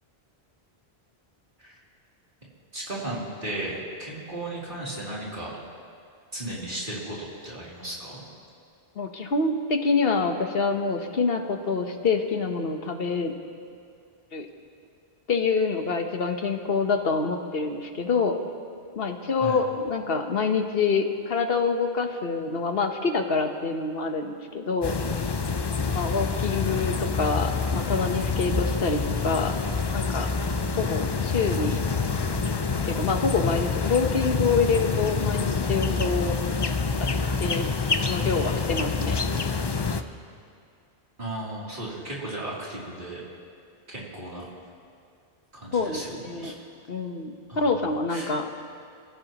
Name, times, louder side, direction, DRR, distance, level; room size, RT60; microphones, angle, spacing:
voice 1, 2.7-5.5 6.3-8.2 19.4-19.6 30.7-31.0 41.2-43.2 43.9-44.5 45.5-46.5 47.5-47.8 48.1-48.4, right 1 dB, 50° right, -6 dB, 3.5 m, -35 dB
voice 2, 8.9-13.3 14.3-14.5 15.3-18.4 19.0-24.9 25.9-29.6 29.9-30.3 30.8-31.8 32.9-36.4 37.1-37.7 38.1-39.2 45.7-46.6 46.9-48.5, left 4 dB, 70° left, 5 dB, 1.3 m, -26 dB
sound 1, 24.8-40.0, left 4 dB, 30° left, 0.5 m, -27 dB
26.0 x 16.0 x 3.0 m, 2.4 s
omnidirectional pair, 1.0 m